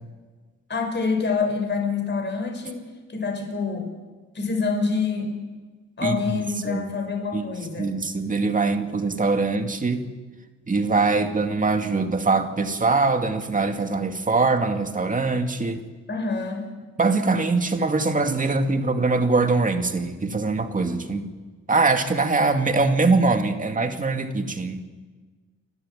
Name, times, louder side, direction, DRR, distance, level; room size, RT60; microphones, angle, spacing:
voice 1, 0.7-3.9 4.3-5.3 6.0-7.9 16.1-16.7, left 4 dB, 35° left, 4 dB, 5.8 m, -26 dB
voice 2, 6.0-6.8 7.3-7.5 7.8-10.0 10.7-15.8 17.0-21.3 21.7-24.8, right 3 dB, 25° right, 5 dB, 2.4 m, -23 dB
30.0 x 12.5 x 9.3 m, 1.4 s
cardioid pair, 90°, 30 cm